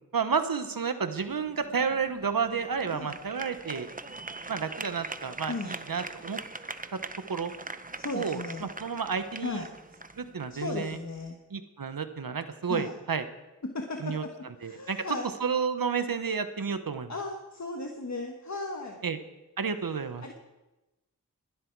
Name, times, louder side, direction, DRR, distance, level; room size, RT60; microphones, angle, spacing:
voice 1, 0.1-3.9 4.5-6.4 6.9-7.0 7.3-7.5 8.1-9.7 10.2-11.0 11.5-13.2 14.0-14.2 14.6-17.1 19.0-19.2 19.6-20.2, right 6 dB, 90° right, 9 dB, 1.1 m, -31 dB
sound 1, 1.2-11.3, right 3 dB, 25° right, 0.8 m, -42 dB
voice 2, 8.0-8.7 9.4-9.7 10.5-11.4 12.7-12.9 13.6-14.3 14.6-15.3 17.1-19.0 20.2-20.3, left 3 dB, 55° left, 2 dB, 1.5 m, -36 dB
21.0 x 12.0 x 4.7 m, 1.0 s
wide cardioid pair, 60°, 33 cm